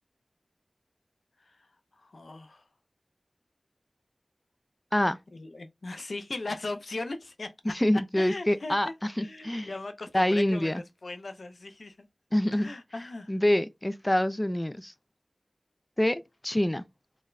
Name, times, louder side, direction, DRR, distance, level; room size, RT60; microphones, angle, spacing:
voice 1, 1.9-2.6 5.3-7.7 8.2-12.1 12.5-13.3, left 2 dB, 80° left, 0.5 m, -39 dB
voice 2, 7.7-9.7 10.1-10.8 12.3-12.7 13.3-14.9 16.0-16.8, left 1 dB, 20° left, 0.3 m, -26 dB
3.9 x 2.1 x 2.5 m
wide cardioid pair, 50°, 0 cm